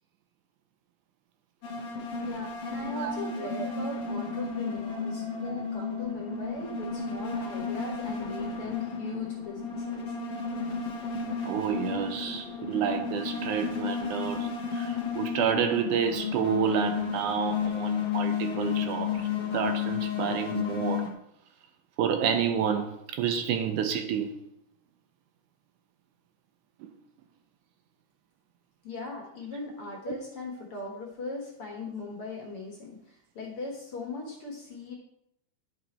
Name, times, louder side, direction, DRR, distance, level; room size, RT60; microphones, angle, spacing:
sound 1, 1.6-21.1, left 6 dB, 70° left, 1.0 m, -33 dB
voice 1, 2.1-10.1 28.8-34.9, left 3 dB, 55° left, 0 dB, 1.8 m, -39 dB
voice 2, 2.9-3.5 11.4-21.1 22.0-24.3, right 8 dB, 80° right, 7 dB, 2.0 m, -29 dB
10.5 x 5.6 x 4.2 m, 0.78 s
omnidirectional pair, 3.9 m